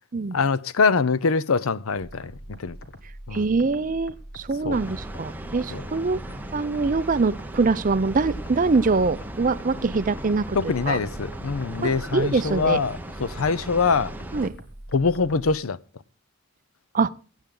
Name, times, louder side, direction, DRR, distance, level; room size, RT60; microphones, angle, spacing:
voice 1, 0.3-2.8 3.3-3.5 4.6-4.8 5.7-5.8 10.5-14.1 14.9-15.8, left 4 dB, 80° left, 0.6 m, -24 dB
sound 1, 1.9-15.5, equal, 55° left, 1.9 m, -43 dB
voice 2, 3.3-6.2 6.5-11.0 11.8-12.8 14.3-14.6 16.9-17.1, right 4 dB, 40° right, 0.5 m, -24 dB
sound 2, 4.7-14.5, right 1 dB, 10° right, 0.9 m, -37 dB
22.5 x 9.0 x 3.8 m
head